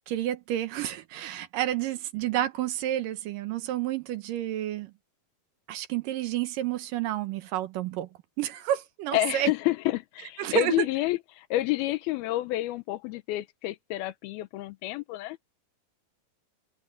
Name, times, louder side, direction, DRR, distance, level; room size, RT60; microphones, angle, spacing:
voice 1, 0.1-4.9 5.7-8.1 8.4-9.5 10.4-10.9, right 12 dB, 70° right, 2.4 m, -30 dB
voice 2, 9.1-15.4, left 17 dB, 85° left, 2.7 m, -29 dB
omnidirectional pair, 4.3 m